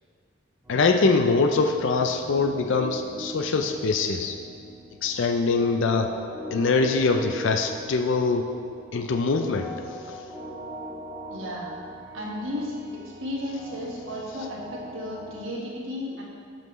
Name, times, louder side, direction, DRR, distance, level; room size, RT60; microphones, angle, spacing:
sound 1, 0.6-15.5, equal, 10° right, 1.6 m, -41 dB
voice 1, 0.7-4.4 5.0-6.1 6.5-8.5 8.9-9.7, left 4 dB, 60° left, 5 dB, 0.5 m, -23 dB
voice 2, 11.3-11.7 12.1-16.2, left 1 dB, 65° right, -3 dB, 1.6 m, -34 dB
12.0 x 5.7 x 3.1 m, 2.1 s
head